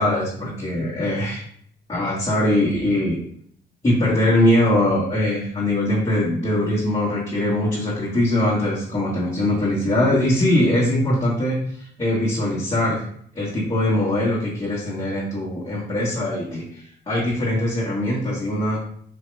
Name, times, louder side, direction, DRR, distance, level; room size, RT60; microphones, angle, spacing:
voice 1, 0.0-1.4 1.9-3.2 3.8-13.0 13.3-18.8, left 1 dB, 25° left, -8 dB, 1.4 m, -21 dB
4.4 x 2.8 x 3.3 m, 0.63 s
cardioid pair, 90°, 20 cm